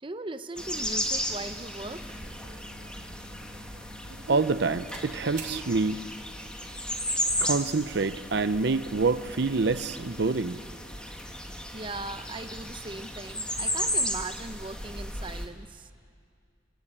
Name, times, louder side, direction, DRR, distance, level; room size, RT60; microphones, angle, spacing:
voice 1, 0.0-2.2 11.7-15.9, right 2 dB, 30° right, 9 dB, 0.8 m, -39 dB
sound 1, 0.6-15.5, left 1 dB, 5° left, 1.8 m, -34 dB
sound 2, 2.2-4.5 4.9-5.1 5.3-5.6, right 5 dB, 45° right, 3.3 m, -47 dB
voice 2, 4.1-6.0 7.4-10.6, right 3 dB, 65° right, 12 dB, 0.7 m, -27 dB
28.5 x 19.0 x 8.7 m, 2.2 s
head